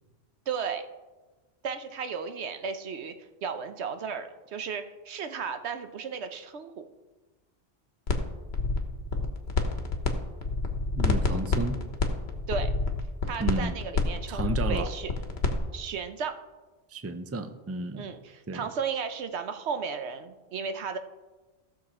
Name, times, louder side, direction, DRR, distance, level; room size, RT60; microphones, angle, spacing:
voice 1, 0.5-0.8 1.6-3.1 3.4-6.9 12.5-12.7 13.3-15.1 15.7-16.4 17.9-21.0, right 6 dB, 85° right, 9 dB, 1.1 m, -34 dB
sound 1, 8.1-8.2 8.5-10.1 10.4-15.6, left 3 dB, 70° left, 1.3 m, -27 dB
voice 2, 11.0-11.8 13.4-13.8 14.3-14.9 16.9-18.1 18.5-18.6, right 3 dB, 20° right, 8 dB, 0.5 m, -32 dB
15.5 x 6.5 x 4.3 m, 1.2 s
omnidirectional pair, 1.1 m